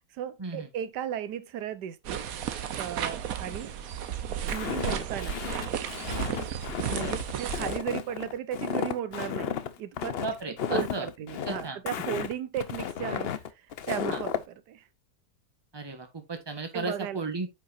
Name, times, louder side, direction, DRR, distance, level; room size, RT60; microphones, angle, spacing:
voice 1, 0.0-2.3 2.8-3.7 4.4-5.4 6.8-10.2 10.5-14.9 16.7-17.2, right 10 dB, 90° right, 1.4 m, -35 dB
sound 1, 2.0-7.8, right 9 dB, 65° right, 1.2 m, -33 dB
Walk footsteps, 4.5-14.4, left 8 dB, 60° left, 0.6 m, -33 dB
voice 2, 10.2-11.1 11.5-11.8 14.1-14.2 15.7-17.5, right 3 dB, 15° right, 1.4 m, -34 dB
9.1 x 5.6 x 2.6 m
omnidirectional pair, 1.7 m